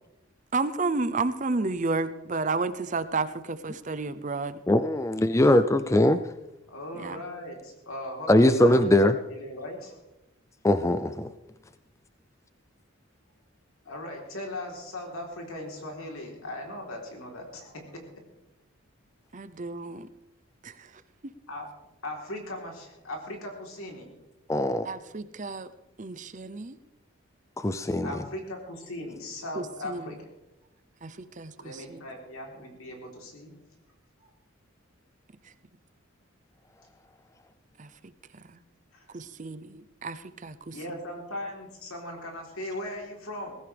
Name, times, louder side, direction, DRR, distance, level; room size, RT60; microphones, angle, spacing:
voice 1, 0.5-4.6 6.9-7.2 19.3-20.1 20.6-21.0 24.8-25.7 26.0-26.8 29.5-30.2 31.0-32.0 35.4-35.5 37.8-38.6 39.1-40.8, right 3 dB, 35° right, 13 dB, 0.6 m, -32 dB
voice 2, 4.7-6.2 8.3-9.2 10.6-11.3 24.5-24.9 27.6-28.1, left 1 dB, 15° left, 11 dB, 0.4 m, -21 dB
voice 3, 6.7-8.9 9.3-10.0 13.9-18.2 21.5-21.7 22.0-24.1 28.0-30.3 31.6-33.5 38.9-39.1 40.7-43.5, left 1 dB, 90° left, 1 dB, 3.7 m, -38 dB
18.5 x 16.0 x 3.4 m, 0.95 s
head